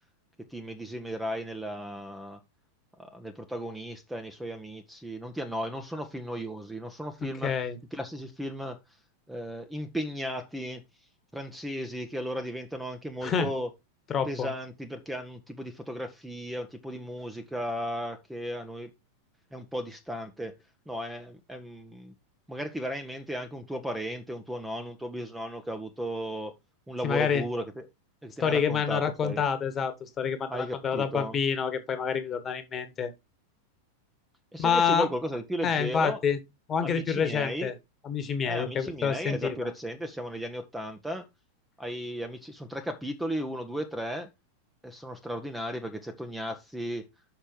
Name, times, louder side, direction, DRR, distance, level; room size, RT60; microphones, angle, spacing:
voice 1, 0.5-2.4 3.0-7.5 7.9-8.8 9.3-10.8 11.3-13.7 14.3-18.9 19.5-20.6 20.9-22.1 22.5-26.5 26.9-27.9 28.2-29.4 30.5-31.4 34.5-36.2 36.8-37.7 38.5-41.2 41.8-44.3 44.8-47.1, equal, 5° right, 1.0 m, -35 dB
voice 2, 7.4-7.8 13.2-13.5 14.1-14.5 27.0-27.4 28.4-33.1 34.6-35.1 35.6-36.4 36.7-37.7 38.0-39.7, left 7 dB, 25° left, 1.5 m, -27 dB
6.6 x 5.7 x 4.5 m
figure-of-eight pair, 90°, 0 cm